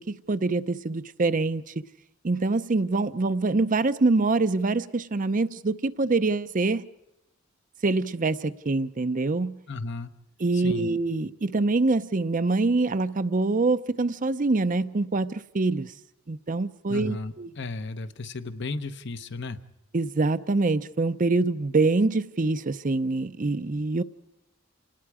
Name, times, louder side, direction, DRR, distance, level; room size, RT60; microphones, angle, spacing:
voice 1, 0.0-1.6 2.2-6.9 7.8-9.6 10.4-15.9 16.3-17.5 19.9-24.0, right 3 dB, 40° right, 0.6 m, -25 dB
voice 2, 9.7-10.1 10.5-10.9 16.9-19.6, left 3 dB, 60° left, 1.0 m, -34 dB
28.0 x 19.5 x 4.9 m
head